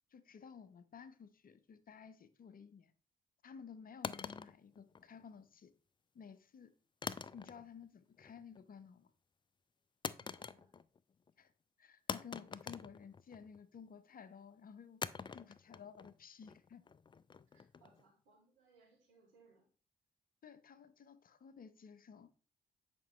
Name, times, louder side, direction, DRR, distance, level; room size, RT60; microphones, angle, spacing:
voice 1, 0.1-2.9 3.4-5.8 6.1-6.7 7.3-9.1 11.4-11.5 11.8-15.0 15.3-16.8 20.4-22.3, left 6 dB, 45° left, 0.8 m, -54 dB
sound 1, 4.0-5.4 7.0-7.9 8.2-8.6 10.0-11.0 11.3-11.4 12.1-13.6 15.0-18.0, left 5 dB, 25° left, 0.4 m, -45 dB
voice 2, 10.1-10.7 17.5-19.7, right 4 dB, 70° right, 2.9 m, -69 dB
8.9 x 5.2 x 3.2 m
figure-of-eight pair, 40°, 21 cm